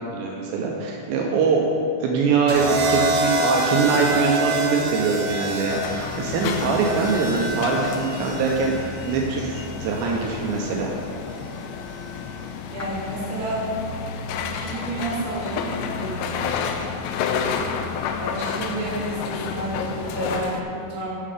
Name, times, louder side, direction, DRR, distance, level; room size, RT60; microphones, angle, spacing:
voice 1, 0.1-1.7 2.0-8.8 9.1-10.9, right 5 dB, 85° right, -1 dB, 3.0 m, -23 dB
sound 1, 2.5-10.6 11.8-12.2, right 1 dB, 70° right, 2.8 m, -28 dB
sound 2, 5.7-20.6, left 6 dB, 85° left, 2.7 m, -30 dB
voice 2, 12.7-13.7 14.4-16.8 18.2-21.1, right 2 dB, 50° right, -9 dB, 3.5 m, -31 dB
7.5 x 7.5 x 5.0 m, 2.5 s
omnidirectional pair, 4.9 m